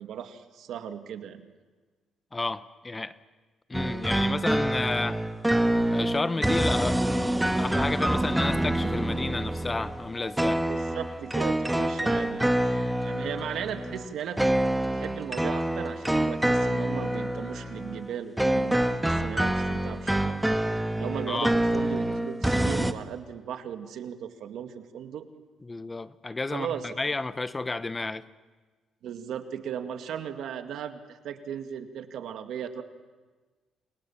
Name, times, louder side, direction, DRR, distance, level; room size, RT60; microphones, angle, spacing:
voice 1, 0.0-1.5 10.7-14.4 14.9-20.6 20.9-25.2 26.5-27.1 29.0-32.8, right 8 dB, 75° right, 7 dB, 2.2 m, -37 dB
voice 2, 2.3-3.2 3.7-5.2 5.9-7.0 7.6-10.6 21.3-21.5 25.6-28.2, left 3 dB, 20° left, 14 dB, 1.0 m, -31 dB
sound 1, 3.7-22.9, right 1 dB, 5° right, 1.6 m, -26 dB
28.5 x 28.0 x 7.4 m, 1.4 s
cardioid pair, 90°, 0 cm